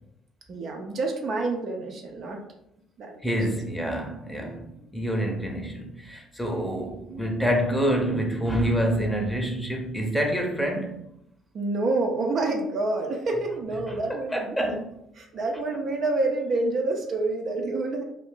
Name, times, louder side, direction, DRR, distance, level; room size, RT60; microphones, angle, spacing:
voice 1, 0.5-2.4 3.0-3.4 4.3-4.5 11.5-14.6 15.1-18.0, right 2 dB, 55° right, 0.4 m, -28 dB
voice 2, 3.2-11.0 14.3-14.9, equal, 5° left, 0.7 m, -27 dB
2.4 x 2.1 x 3.7 m
hypercardioid pair, 55°, 0 cm